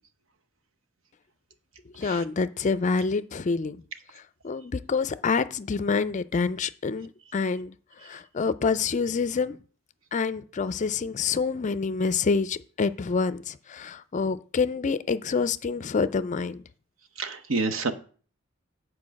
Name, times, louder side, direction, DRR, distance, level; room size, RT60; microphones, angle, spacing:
voice 1, 2.0-3.8 4.4-7.8 8.0-9.6 10.1-16.6, left 5 dB, 35° left, 0.4 m, -27 dB
voice 2, 17.2-17.9, right 3 dB, 70° right, 0.9 m, -28 dB
8.5 x 4.6 x 6.3 m
head